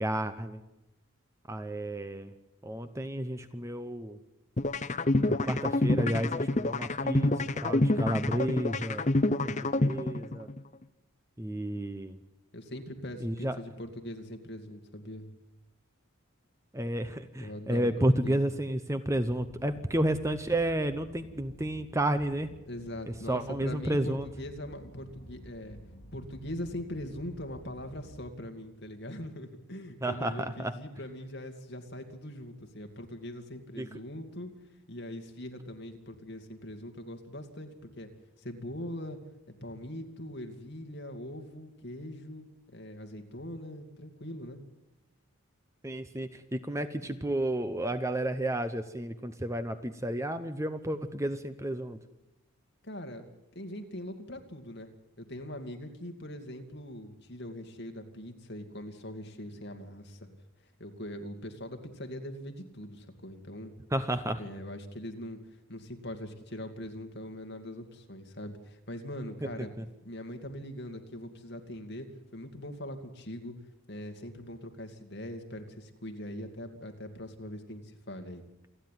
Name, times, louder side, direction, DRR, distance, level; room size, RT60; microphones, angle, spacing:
voice 1, 0.0-0.6 1.5-2.3 2.6-4.2 5.2-9.0 9.4-10.5 11.4-12.2 13.2-13.6 16.7-22.5 23.3-24.3 30.0-30.7 33.8-33.9 45.8-52.0 63.9-64.4 69.4-69.7, right 1 dB, 15° right, 10 dB, 0.8 m, -31 dB
sound 1, 4.6-10.6, left 2 dB, 35° left, 0.7 m, -27 dB
voice 2, 12.5-15.3 17.4-18.4 22.7-25.8 26.1-34.5 34.9-38.1 38.4-39.2 39.6-44.6 52.8-53.2 53.5-54.9 55.2-60.3 60.8-63.7 64.4-69.7 70.0-72.1 72.3-73.5 73.9-78.4, left 1 dB, 50° left, 5 dB, 2.4 m, -41 dB
sound 2, 19.0-28.2, equal, 65° left, 1.9 m, -52 dB
28.5 x 10.0 x 9.3 m, 0.95 s
head